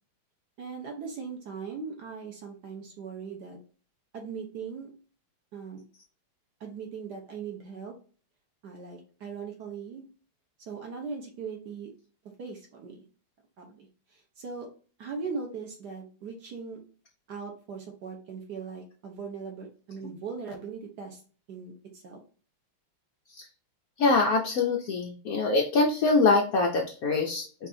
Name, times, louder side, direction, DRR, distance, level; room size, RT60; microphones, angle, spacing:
voice 1, 0.6-3.6 4.1-4.9 5.5-5.8 6.6-7.9 8.6-10.1 10.7-11.9 12.4-13.0 13.6-14.7 15.0-16.8 17.3-21.2 21.5-22.2, right 5 dB, 60° right, 1 dB, 1.3 m, -39 dB
voice 2, 24.0-27.7, left 3 dB, 80° left, 1 dB, 0.7 m, -24 dB
5.9 x 2.7 x 2.6 m, 0.38 s
omnidirectional pair, 2.3 m